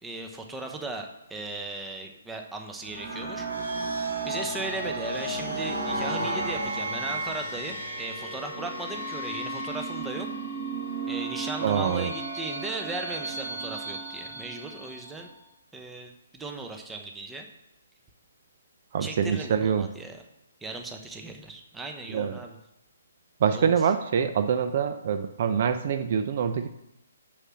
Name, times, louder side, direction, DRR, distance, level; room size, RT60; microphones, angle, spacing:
voice 1, 0.0-3.5 4.2-10.3 11.1-15.3 15.7-17.5 19.0-20.2 20.6-22.6 23.5-23.7, right 2 dB, 10° right, 3 dB, 1.0 m, -37 dB
sound 1, 2.8-15.3, right 2 dB, 80° right, 3.4 m, -33 dB
voice 2, 11.6-12.1 18.9-19.9 22.1-22.4 23.4-26.7, right 7 dB, 50° right, 9 dB, 0.6 m, -25 dB
6.5 x 5.9 x 6.3 m, 0.86 s
figure-of-eight pair, 135°, 0 cm